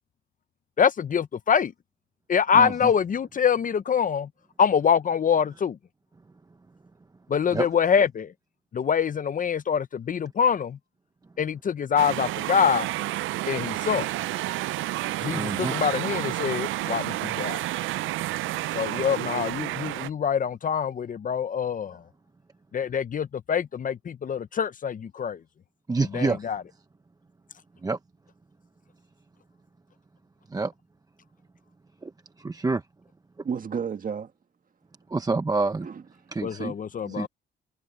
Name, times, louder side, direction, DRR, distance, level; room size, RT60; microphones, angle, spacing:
voice 1, 0.8-1.7 2.3-4.3 4.6-5.8 7.3-8.3 8.7-10.8 11.4-12.9 13.5-14.1 15.2-17.6 18.7-22.0 22.7-25.4 26.1-26.6 36.4-37.3, left 7 dB, 40° left, 0.8 m, -25 dB
voice 2, 2.5-2.9 7.5-7.7 15.3-15.7 25.9-26.5 27.8-28.0 30.5-30.7 32.0-32.1 32.4-32.8 35.1-35.9 36.3-36.7 37.1-37.3, right 3 dB, 20° right, 0.8 m, -27 dB
sound 1, 12.0-20.1, right 16 dB, 85° right, 0.5 m, -30 dB
voice 3, 33.4-34.3 35.8-36.0 37.0-37.3, right 6 dB, 45° right, 1.9 m, -32 dB
cardioid pair, 90°, 20 cm